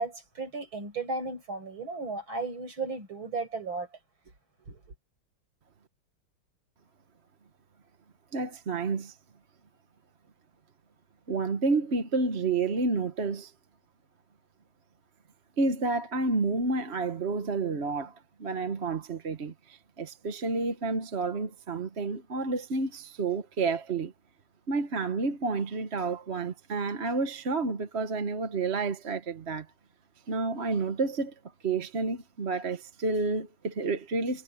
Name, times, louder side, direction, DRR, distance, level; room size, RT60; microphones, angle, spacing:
voice 1, 0.0-3.9 4.7-4.9, right 3 dB, 75° right, 6.8 m, -35 dB
voice 2, 8.3-9.2 11.3-13.5 15.6-18.1 18.4-24.1 24.7-29.7 30.3-31.3 31.6-34.4, right 3 dB, 40° right, 1.3 m, -30 dB
omnidirectional pair, 2.2 m